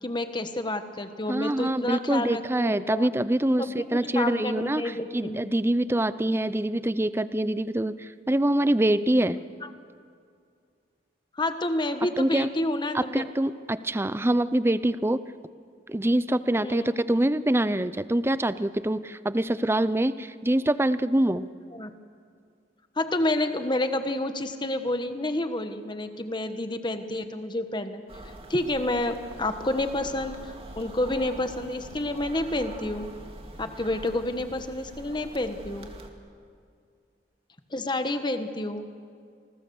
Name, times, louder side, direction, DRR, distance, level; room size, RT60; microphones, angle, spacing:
voice 1, 0.0-3.1 3.6-5.4 11.4-13.3 16.6-16.9 21.7-21.9 23.0-28.0 28.5-30.4 30.8-33.1 33.6-35.9 37.7-38.9, left 1 dB, 25° left, 8 dB, 1.3 m, -29 dB
voice 2, 1.3-9.4 12.2-12.5 12.9-15.2 15.9-21.5, right 1 dB, 15° right, 14 dB, 0.6 m, -25 dB
sound 1, 28.1-36.1, right 1 dB, 35° right, 2.3 m, -44 dB
28.0 x 20.5 x 7.1 m, 2.2 s
head